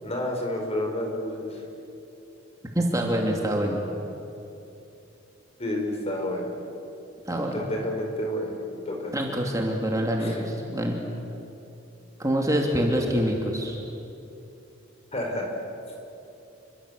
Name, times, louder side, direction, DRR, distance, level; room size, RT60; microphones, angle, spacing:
voice 1, 0.0-1.6 5.6-6.5 7.5-8.5 8.9-9.1 10.2-10.4 15.1-15.5, left 1 dB, 30° left, 1 dB, 5.2 m, -30 dB
voice 2, 2.7-3.8 7.3-7.6 9.1-11.0 12.2-13.7, equal, 15° right, 0 dB, 2.7 m, -25 dB
28.5 x 23.5 x 8.4 m, 2.8 s
head